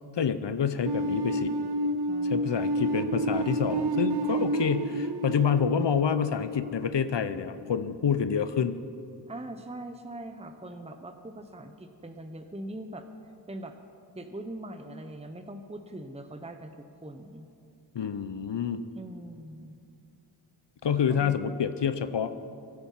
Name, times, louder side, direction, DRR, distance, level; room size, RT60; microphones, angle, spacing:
voice 1, 0.1-1.5 2.2-8.8 17.9-18.8 20.8-22.3, left 7 dB, 75° left, 12 dB, 0.7 m, -28 dB
sound 1, 0.8-7.7, right 1 dB, 65° right, 0.8 m, -30 dB
voice 2, 2.1-2.7 9.3-13.1 13.5-13.8 14.1-17.5 19.0-19.8 21.1-21.3, right 1 dB, 15° right, 6 dB, 0.9 m, -42 dB
24.0 x 9.7 x 5.8 m, 2.4 s
wide cardioid pair, 55°, 43 cm